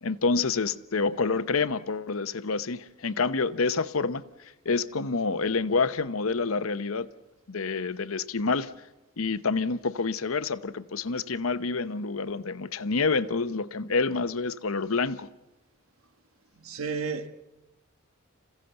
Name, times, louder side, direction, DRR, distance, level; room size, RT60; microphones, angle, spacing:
voice 1, 0.0-4.2 4.6-7.1 7.5-8.7 9.2-15.3, left 4 dB, 75° left, 0.8 m, -28 dB
voice 2, 16.6-17.3, right 5 dB, 80° right, 1.5 m, -32 dB
27.5 x 16.0 x 7.9 m
head